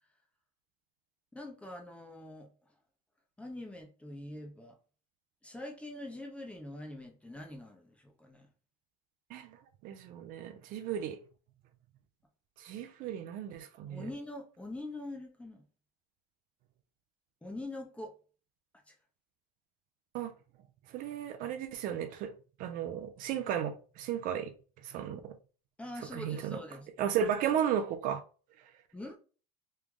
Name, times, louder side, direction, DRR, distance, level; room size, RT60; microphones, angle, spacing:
voice 1, 1.3-2.5 3.4-4.8 5.4-8.5 13.9-15.6 17.4-18.1 18.9-19.0 25.8-26.9 28.9-29.2, left 1 dB, 5° left, 0.7 m, -44 dB
voice 2, 9.8-11.2 12.6-14.1 20.1-20.3 20.9-22.3 22.6-24.5 24.8-25.3 26.1-26.6 27.0-28.2, right 9 dB, 50° right, 0.5 m, -34 dB
3.2 x 2.4 x 3.6 m
supercardioid pair, 125°, 18 cm